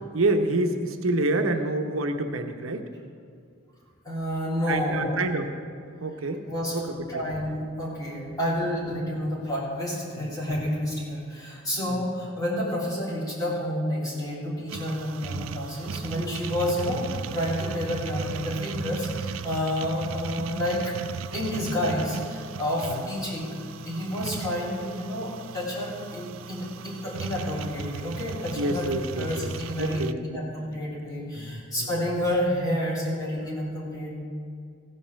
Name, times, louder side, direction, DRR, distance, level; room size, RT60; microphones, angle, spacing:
voice 1, 0.1-2.9 4.7-5.5 6.0-6.4 6.7-7.2 8.8-9.0 10.1-10.6 11.8-12.0 22.9-23.1 28.6-29.5 29.8-30.4 31.3-31.9, right 2 dB, 85° right, 5 dB, 0.9 m, -28 dB
voice 2, 4.0-5.3 6.5-6.8 7.1-20.9 21.3-23.6 23.8-28.9 29.2-30.0 30.3-34.1, left 1 dB, 20° left, -7 dB, 3.6 m, -29 dB
sound 1, 14.7-30.1, right 6 dB, 70° right, 0.3 m, -36 dB
15.5 x 5.4 x 7.3 m, 2.3 s
head